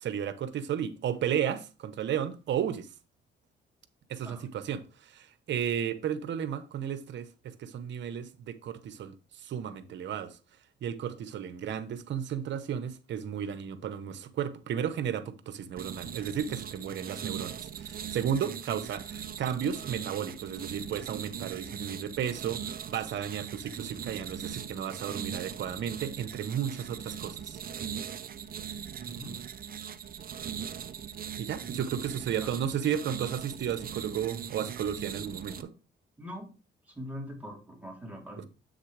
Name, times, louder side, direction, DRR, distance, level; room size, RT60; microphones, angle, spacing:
voice 1, 0.0-2.9 4.1-10.4 10.8-27.6 31.4-35.7, right 9 dB, 65° right, 1.0 m, -33 dB
sound 1, 15.8-35.6, right 8 dB, 45° right, 0.7 m, -40 dB
voice 2, 29.0-29.4 32.4-32.5 36.2-36.6 36.9-38.5, equal, 10° right, 3.6 m, -42 dB
8.0 x 6.4 x 3.3 m
cardioid pair, 90°, 20 cm